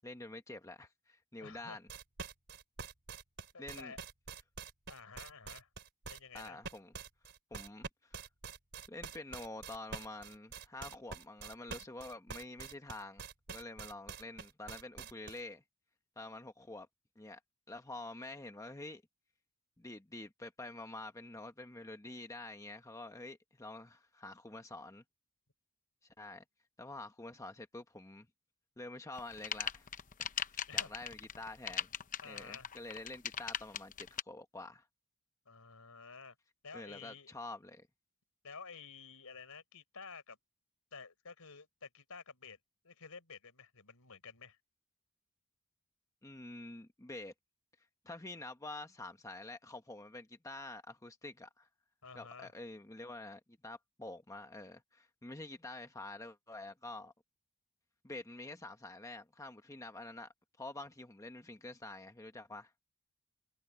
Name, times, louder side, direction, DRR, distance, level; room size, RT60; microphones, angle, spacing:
voice 1, 0.0-1.8 3.6-3.9 6.3-6.9 7.5-8.2 8.9-15.6 16.2-16.9 17.2-17.4 17.7-19.0 19.8-25.0 26.2-26.4 26.8-28.3 28.8-29.9 30.2-31.9 32.2-34.9 36.7-37.9 46.2-47.3 48.0-51.7 52.1-57.1 58.0-62.7, left 2 dB, 15° left, 1.1 m, -47 dB
voice 2, 1.4-1.8 3.5-4.0 4.9-5.7 6.1-6.6 30.7-30.9 32.2-32.7 35.5-36.4 36.6-37.3 38.4-40.4 40.9-42.6 42.8-44.6 52.0-52.5, left 5 dB, 75° left, 4.2 m, -51 dB
sound 1, 1.9-15.4, right 5 dB, 50° right, 3.2 m, -46 dB
sound 2, 29.1-34.2, left 8 dB, 35° left, 0.8 m, -38 dB
head